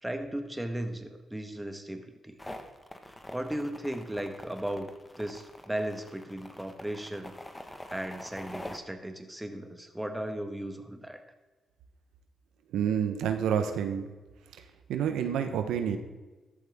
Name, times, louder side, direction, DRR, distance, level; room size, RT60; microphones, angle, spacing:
voice 1, 0.0-2.3 3.3-4.9 5.2-7.4 7.9-11.2, right 1 dB, 10° right, 6 dB, 1.6 m, -36 dB
sound 1, 2.4-8.8, left 1 dB, 15° left, 1.6 m, -44 dB
voice 2, 12.7-14.1 14.9-16.0, right 8 dB, 90° right, 7 dB, 1.1 m, -28 dB
14.0 x 12.0 x 3.7 m, 1.2 s
cardioid pair, 75°, 0 cm